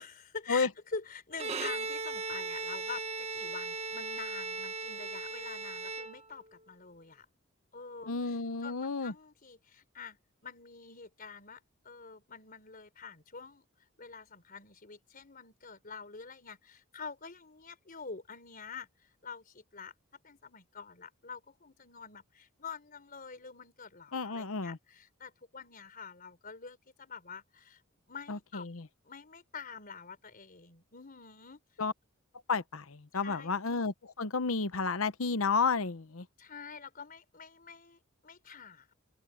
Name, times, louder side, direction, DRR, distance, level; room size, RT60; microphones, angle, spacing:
voice 1, 0.0-7.3 7.7-10.2 10.4-11.6 11.8-13.6 14.0-19.9 20.2-27.8 28.1-28.7 29.1-31.6 33.2-33.5 36.4-38.9, left 5 dB, 45° left, 4.2 m, -46 dB
Bowed string instrument, 1.3-6.6, right 3 dB, 30° right, 1.6 m, -38 dB
voice 2, 8.1-9.1 24.1-24.8 28.3-28.9 31.8-31.9 32.5-36.2, left 4 dB, 80° left, 0.9 m, -31 dB
open air
head